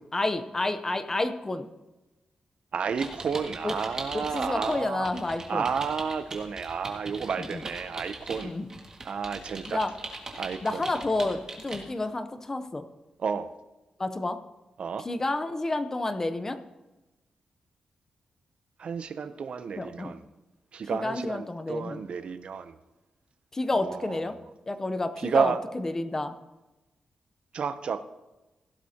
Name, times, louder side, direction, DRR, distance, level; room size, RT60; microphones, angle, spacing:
voice 1, 0.1-1.7 3.6-3.7 4.1-5.7 7.4-7.7 8.4-8.7 9.7-9.9 10.6-12.8 14.0-14.4 15.0-16.6 19.8-20.1 20.9-22.0 23.5-24.3 24.7-26.3, left 2 dB, 20° left, 10 dB, 0.7 m, -30 dB
voice 2, 2.7-5.1 5.5-8.5 9.0-9.8 10.4-10.8 13.2-13.5 14.8-15.1 18.8-20.2 20.7-22.8 23.7-24.2 25.2-25.6 27.5-28.0, right 6 dB, 55° right, 12 dB, 0.5 m, -31 dB
sound 1, 2.9-4.8 5.0-11.8, right 2 dB, 30° right, 1.8 m, -40 dB
16.5 x 12.0 x 2.8 m, 1.1 s
wide cardioid pair, 140°, 2 cm